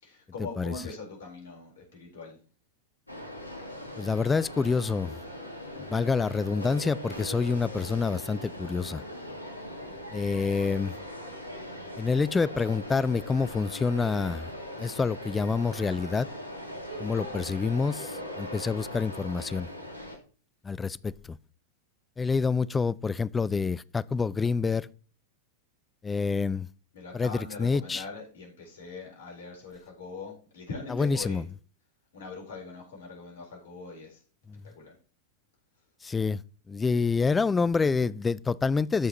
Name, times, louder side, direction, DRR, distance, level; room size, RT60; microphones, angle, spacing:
voice 1, 0.0-2.4 9.9-10.2 26.9-31.4 32.1-34.2 34.7-34.9, left 4 dB, 60° left, 4.0 m, -42 dB
sound 1, 3.1-20.2, equal, 85° left, 2.0 m, -40 dB
voice 2, 4.0-5.2 5.9-9.0 10.1-10.9 12.0-14.5 14.8-16.3 17.0-19.7 20.6-21.4 22.2-24.9 26.0-26.7 27.1-28.0 30.9-31.4 34.5-34.6 36.0-36.4 36.7-39.1, left 4 dB, 15° left, 0.3 m, -27 dB
13.5 x 5.6 x 3.0 m
figure-of-eight pair, 90°, 0 cm